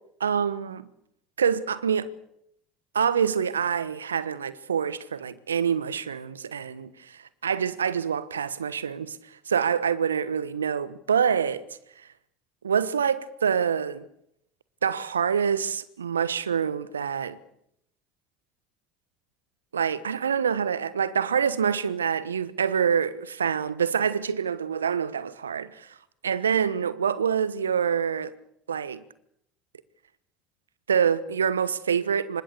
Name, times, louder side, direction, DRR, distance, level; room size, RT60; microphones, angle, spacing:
voice 1, 0.2-0.8 1.4-2.1 2.9-9.2 9.5-11.6 12.6-14.0 14.8-17.4 19.7-25.9 26.2-28.3 28.7-29.0 30.9-32.4, right 7 dB, 80° right, 1.2 m, -26 dB
27.5 x 25.5 x 6.8 m
figure-of-eight pair, 65°, 0 cm